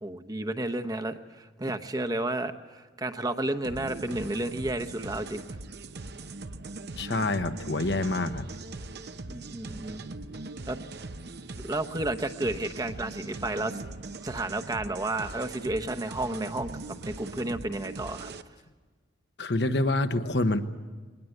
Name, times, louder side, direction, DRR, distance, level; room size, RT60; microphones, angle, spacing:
voice 1, 0.0-1.2 1.6-5.4 9.3-10.0 10.7-10.8 11.6-13.8 14.2-16.7 17.0-18.3, right 2 dB, 20° right, 7 dB, 1.0 m, -31 dB
sound 1, 3.6-18.4, right 2 dB, 65° right, 0.8 m, -41 dB
voice 2, 7.0-8.5 19.4-20.7, left 2 dB, 65° left, 8 dB, 1.2 m, -27 dB
22.0 x 19.5 x 8.0 m, 1.4 s
head